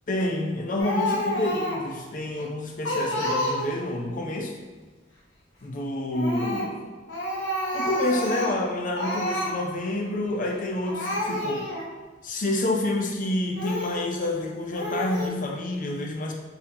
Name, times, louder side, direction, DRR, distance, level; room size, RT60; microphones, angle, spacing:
voice 1, 0.1-4.5 5.6-6.8 7.7-11.6 12.2-16.3, left 1 dB, 45° left, 1 dB, 0.6 m, -28 dB
Speech, 0.8-1.9 2.4-2.5 2.8-3.9 6.1-6.7 7.1-8.6 9.0-9.5 10.5-10.6 10.8-11.9 12.5-12.6 13.5-14.0 14.7-15.3, left 1 dB, 75° left, 0.9 m, -29 dB
4.3 x 3.5 x 2.7 m, 1.3 s
head